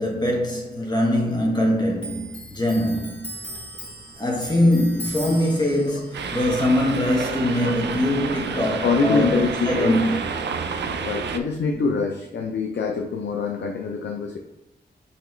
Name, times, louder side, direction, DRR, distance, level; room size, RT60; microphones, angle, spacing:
voice 1, 0.0-3.3 4.2-10.2, left 1 dB, 25° left, 1.1 m, -22 dB
Clock, 2.0-9.0 9.3-10.6 10.9-11.7, right 1 dB, 5° left, 1.5 m, -39 dB
sound 1, 6.1-11.4, right 5 dB, 80° right, 0.4 m, -30 dB
voice 2, 6.3-6.9 7.6-7.8 8.8-10.0 11.0-14.4, left 4 dB, 80° left, 0.5 m, -25 dB
5.7 x 2.9 x 3.1 m
wide cardioid pair, 95°, 18 cm